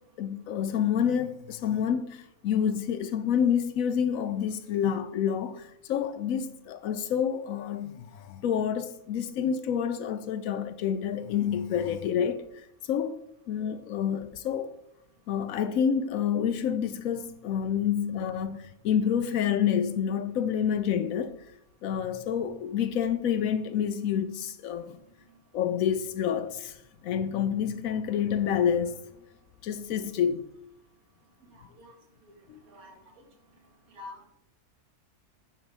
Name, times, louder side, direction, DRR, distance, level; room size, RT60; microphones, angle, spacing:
voice 1, 0.2-12.4 12.9-13.2 13.5-14.7 15.3-21.4 21.8-25.0 25.5-26.8 27.0-29.0 29.6-30.5 32.5-32.6, left 8 dB, 70° left, 1.0 m, -28 dB
voice 2, 31.5-31.9 32.7-32.9 33.9-34.3, left 2 dB, 70° right, 1.8 m, -46 dB
8.8 x 5.2 x 4.1 m
omnidirectional pair, 1.5 m